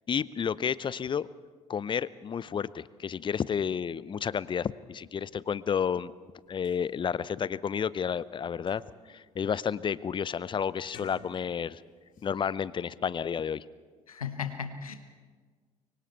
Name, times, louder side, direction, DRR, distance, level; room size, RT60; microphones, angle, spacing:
voice 1, 0.1-1.3 1.7-6.1 6.5-8.8 9.1-11.8 12.2-13.6, left 7 dB, 25° left, 20 dB, 0.6 m, -31 dB
sound 1, 6.3-6.4 6.6-6.8 7.4-7.5 7.9-9.2 9.6-10.0 10.8-11.8 12.1-12.3, left 4 dB, 50° left, 5.8 m, -54 dB
voice 2, 14.1-15.1, left 7 dB, 85° left, 9 dB, 1.1 m, -36 dB
24.0 x 24.0 x 4.5 m, 1.5 s
figure-of-eight pair, 55°, 18 cm